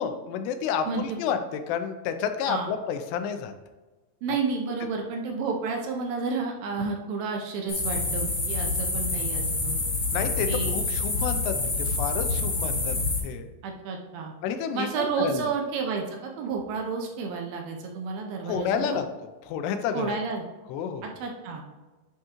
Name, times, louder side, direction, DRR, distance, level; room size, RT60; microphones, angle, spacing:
voice 1, 0.0-1.4 1.7-3.5 10.1-12.9 13.2-13.5 14.4-15.5 18.4-19.1 19.4-20.2 20.7-21.1, left 7 dB, 85° left, 8 dB, 2.8 m, -30 dB
voice 2, 4.2-9.8 10.5-10.7 13.6-14.3 14.7-19.0 19.9-20.5 21.2-21.6, right 5 dB, 80° right, 1 dB, 2.2 m, -31 dB
sound 1, 7.7-13.2, left 3 dB, 55° left, 1.2 m, -27 dB
10.5 x 3.6 x 2.9 m, 1.2 s
omnidirectional pair, 4.8 m